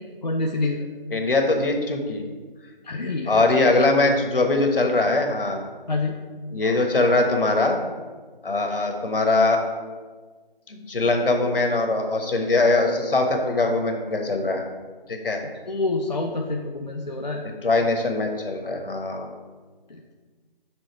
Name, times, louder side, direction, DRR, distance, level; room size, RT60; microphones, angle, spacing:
voice 1, 0.2-0.9 2.9-3.4 5.9-6.2 15.7-17.4 19.9-20.0, left 3 dB, 50° left, 1 dB, 0.5 m, -27 dB
voice 2, 1.1-2.2 3.3-5.6 6.5-7.8 8.4-9.6 10.7-14.6 15.1-15.4 17.4-19.3, left 2 dB, 70° left, 4 dB, 1.2 m, -22 dB
6.4 x 3.8 x 5.6 m, 1.4 s
figure-of-eight pair, 175°, 29 cm